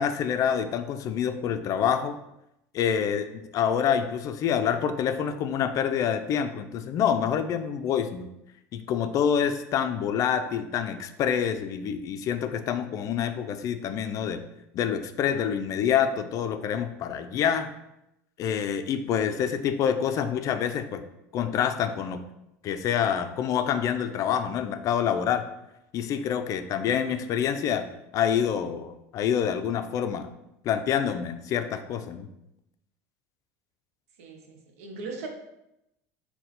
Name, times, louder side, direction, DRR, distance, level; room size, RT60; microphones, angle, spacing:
voice 1, 0.0-2.2 2.7-8.3 8.7-14.4 14.7-17.7 18.4-21.0 21.3-22.2 22.6-25.5 25.9-27.9 28.1-30.3 30.6-32.3, left 8 dB, 45° left, 9 dB, 0.3 m, -27 dB
voice 2, 34.2-35.3, right 4 dB, 85° right, 3 dB, 0.7 m, -39 dB
4.0 x 2.1 x 4.0 m, 0.85 s
supercardioid pair, 95°, 8 cm